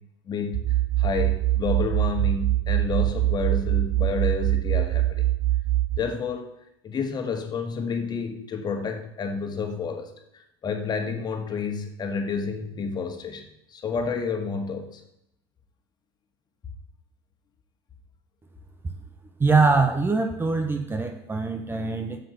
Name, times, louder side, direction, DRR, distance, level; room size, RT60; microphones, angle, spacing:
voice 1, 0.3-0.6 1.0-5.3 6.0-6.5 6.8-15.0, left 5 dB, 30° left, 5 dB, 1.8 m, -30 dB
sound 1, 0.5-6.0, right 15 dB, 50° right, 0.6 m, -23 dB
voice 2, 19.4-22.2, right 4 dB, 15° right, 6 dB, 1.0 m, -23 dB
7.8 x 6.9 x 6.8 m, 0.80 s
supercardioid pair, 105°, 13 cm